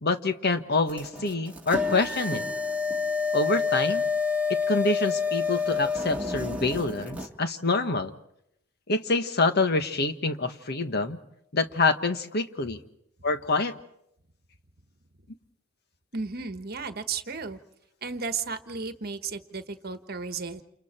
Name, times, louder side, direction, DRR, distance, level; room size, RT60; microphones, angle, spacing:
voice 1, 0.0-2.5 3.3-4.1 4.5-8.1 8.9-11.2 11.5-12.8 13.2-13.7, left 3 dB, 55° left, 8 dB, 1.5 m, -26 dB
sound 1, 0.9-7.3, left 4 dB, 5° right, 1.9 m, -28 dB
voice 2, 16.1-17.6 18.0-20.6, right 5 dB, 50° right, 9 dB, 1.4 m, -34 dB
29.5 x 28.5 x 4.5 m, 0.77 s
head